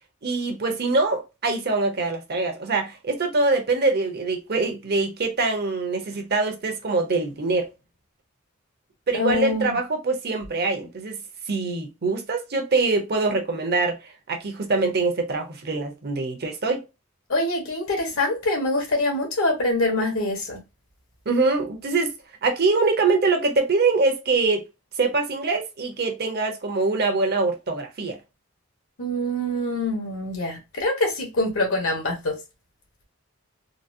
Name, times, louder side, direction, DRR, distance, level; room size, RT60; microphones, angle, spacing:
voice 1, 0.2-7.7 9.1-11.2 11.5-14.0 14.3-16.8 21.3-22.1 22.4-24.6 25.0-28.2, right 3 dB, 50° right, 0.8 m, -24 dB
voice 2, 9.1-9.8 17.3-20.6 29.0-32.4, left 1 dB, 70° left, 1.3 m, -25 dB
3.9 x 2.0 x 2.6 m
head